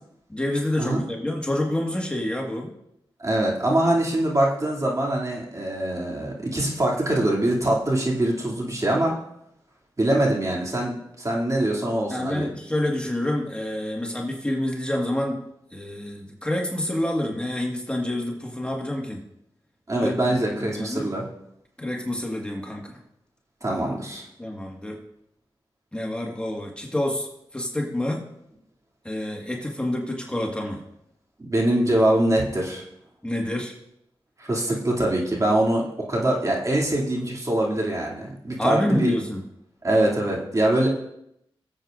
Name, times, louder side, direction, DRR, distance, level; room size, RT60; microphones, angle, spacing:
voice 1, 0.3-2.7 12.1-15.4 15.7-19.2 20.0-20.2 20.5-21.1 21.8-23.0 24.4-25.0 25.9-28.3 29.1-30.8 33.2-33.7 38.6-39.4, left 1 dB, 10° left, 0 dB, 1.8 m, -28 dB
voice 2, 3.2-9.1 10.0-12.5 19.9-21.3 23.6-24.2 31.4-32.8 34.4-39.1 39.8-40.9, right 1 dB, 35° right, -3 dB, 2.7 m, -23 dB
20.5 x 7.8 x 2.6 m, 0.79 s
cardioid pair, 45°, 9 cm